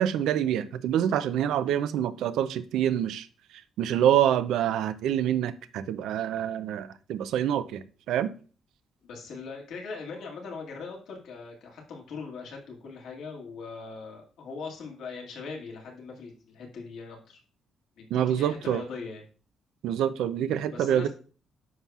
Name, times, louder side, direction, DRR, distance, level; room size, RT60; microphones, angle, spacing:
voice 1, 0.0-3.3 3.8-8.3 18.1-18.8 19.8-21.1, right 10 dB, 85° right, 0.5 m, -26 dB
voice 2, 9.0-17.4 18.0-19.2 20.7-21.1, left 4 dB, 80° left, 2.0 m, -40 dB
9.4 x 5.7 x 2.4 m
cardioid pair, 90°, 0 cm